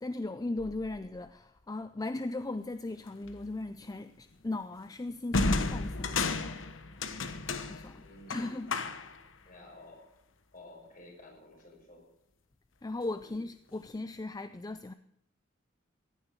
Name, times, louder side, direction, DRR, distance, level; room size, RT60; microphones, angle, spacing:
voice 1, 0.0-6.7 7.7-8.0 8.3-8.7 12.8-14.9, left 2 dB, 20° left, 0.4 m, -38 dB
sound 1, 3.3-3.5 5.3-9.3, left 3 dB, 75° left, 1.1 m, -32 dB
voice 2, 7.9-8.5 9.5-10.0 10.5-12.0 13.2-13.4, left 2 dB, 45° left, 6.1 m, -52 dB
15.5 x 10.5 x 6.6 m
head